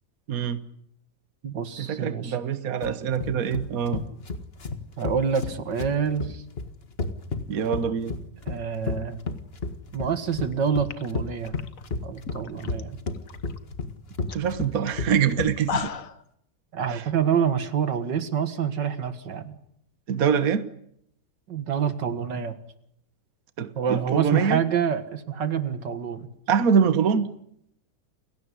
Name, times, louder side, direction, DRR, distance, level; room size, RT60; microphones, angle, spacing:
voice 1, 0.3-0.6 1.8-4.0 7.5-8.1 14.3-15.9 16.9-17.1 20.1-20.6 23.6-24.6 26.5-27.3, right 7 dB, 55° right, 12 dB, 1.6 m, -24 dB
voice 2, 1.4-2.3 5.0-6.4 8.5-9.2 9.9-11.5 12.0-13.0 16.7-19.5 21.5-22.6 23.8-26.3, right 7 dB, 90° right, 10 dB, 2.4 m, -27 dB
sound 1, 2.8-15.8, left 4 dB, 35° left, 2.0 m, -32 dB
sound 2, 10.5-10.6 10.8-12.8 13.1-13.6 13.9-14.0 14.3-14.5 14.9-15.0 15.4-16.2, left 7 dB, 50° left, 1.6 m, -35 dB
30.0 x 17.0 x 9.8 m, 0.75 s
omnidirectional pair, 1.8 m